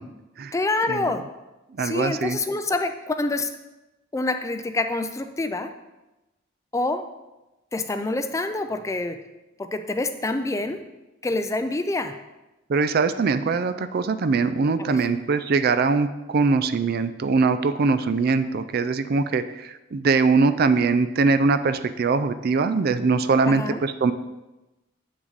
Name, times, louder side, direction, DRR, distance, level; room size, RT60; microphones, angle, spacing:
voice 1, 0.5-1.3 1.8-3.5 4.1-5.7 6.7-7.1 7.7-9.2 9.6-10.8 11.2-12.2 14.8-15.0 23.4-23.8, left 2 dB, 15° left, 8 dB, 0.4 m, -26 dB
voice 2, 1.8-2.4 12.7-24.1, right 4 dB, 55° right, 12 dB, 0.4 m, -22 dB
7.9 x 6.1 x 4.0 m, 1.0 s
head